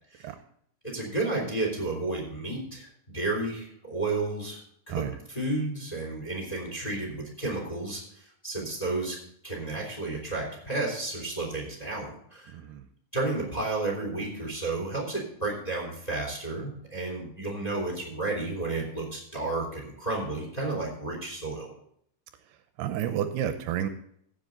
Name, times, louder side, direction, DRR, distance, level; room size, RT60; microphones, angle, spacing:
voice 1, 0.8-5.0 5.3-8.0 8.4-9.2 9.4-12.5 13.1-21.7, right 2 dB, 10° left, -1 dB, 2.7 m, -32 dB
voice 2, 12.5-12.9 22.8-23.9, right 10 dB, 80° right, 9 dB, 2.6 m, -30 dB
15.5 x 7.6 x 3.9 m, 0.66 s
omnidirectional pair, 4.8 m